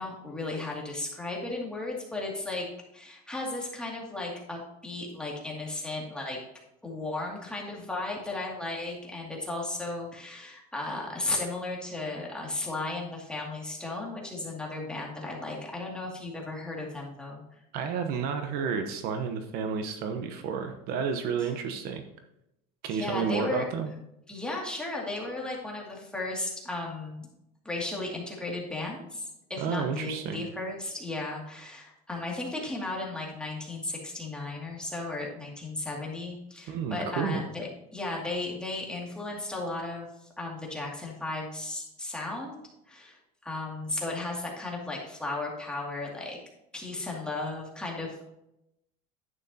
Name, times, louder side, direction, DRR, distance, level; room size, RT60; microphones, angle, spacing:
voice 1, 0.0-2.7 2.9-6.4 6.8-17.4 22.9-23.7 24.3-27.3 27.6-42.6 42.9-46.4 46.7-48.3, left 2 dB, 5° left, -3 dB, 2.4 m, -35 dB
voice 2, 17.7-22.0 22.8-23.9 29.6-30.4 36.7-37.4, right 6 dB, 55° right, 6 dB, 1.0 m, -31 dB
10.5 x 8.9 x 2.9 m, 0.84 s
cardioid pair, 140°, 18 cm